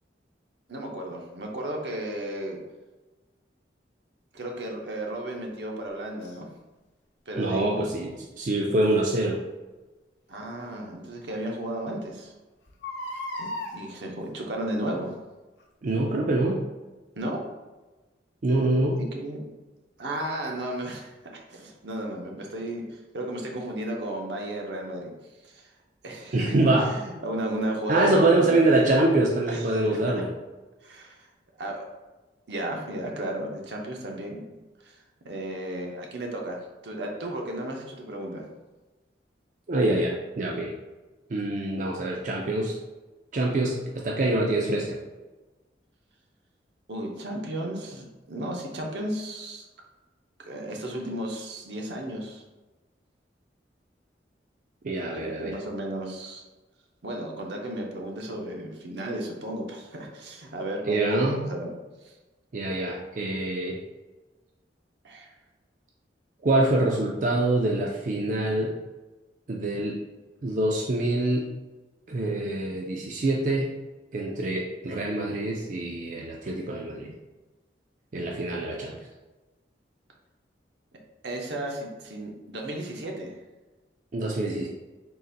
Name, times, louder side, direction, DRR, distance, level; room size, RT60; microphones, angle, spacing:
voice 1, 0.7-2.6 4.3-6.5 7.3-7.9 10.3-12.3 13.4-15.1 17.2-17.4 19.0-19.4 20.0-25.1 25.5-25.7 26.0-26.5 26.9-28.7 29.5-29.8 30.8-31.3 31.6-31.9 32.5-34.4 34.8-34.9 35.2-36.6 36.8-38.4 46.9-49.6 50.5-52.4 55.1-56.4 57.0-61.7 62.0-62.1 65.0-65.3 81.2-83.3, right 1 dB, 75° right, 0 dB, 0.7 m, -34 dB
Crying sobbing, 6.2-6.4 8.8-9.0 10.6-10.7 11.2-11.3 11.5-11.6 12.7-13.7 14.7-15.0 15.6-15.7, left 1 dB, 80° left, 0.7 m, -36 dB
voice 2, 7.4-9.4 15.8-16.6 18.4-19.0 26.3-26.9 27.9-30.3 39.7-40.7 41.3-42.7 43.3-45.0 54.8-55.6 60.8-61.5 62.5-63.8 66.4-68.8 69.5-70.0 70.4-71.5 72.1-73.7 74.1-77.1 78.1-79.0 84.1-84.7, right 2 dB, 45° right, -1 dB, 0.4 m, -25 dB
3.9 x 2.5 x 3.9 m, 1.2 s
head